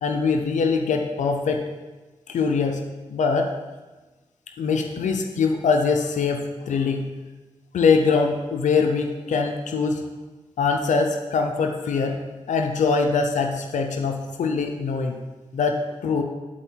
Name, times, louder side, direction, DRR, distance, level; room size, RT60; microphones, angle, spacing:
voice 1, 0.0-1.6 2.3-2.8 3.1-3.5 4.6-7.1 7.7-10.0 10.6-12.2 12.5-15.2 15.5-16.2, left 5 dB, 85° left, 4 dB, 0.6 m, -23 dB
11.5 x 4.3 x 4.5 m, 1.2 s
cardioid pair, 45°, 12 cm